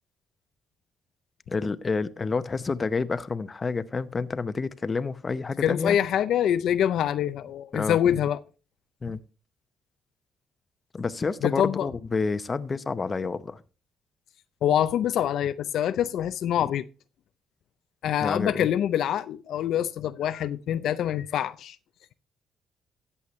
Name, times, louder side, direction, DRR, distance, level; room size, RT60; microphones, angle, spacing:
voice 1, 1.5-6.0 7.7-8.2 9.0-9.2 10.9-13.6 16.6-16.7 18.2-18.7, left 4 dB, 30° left, 0.8 m, -29 dB
voice 2, 5.6-8.4 11.4-11.9 14.6-16.8 18.0-21.8, left 10 dB, 75° left, 0.5 m, -25 dB
14.0 x 8.3 x 3.1 m
cardioid pair, 90°, 0 cm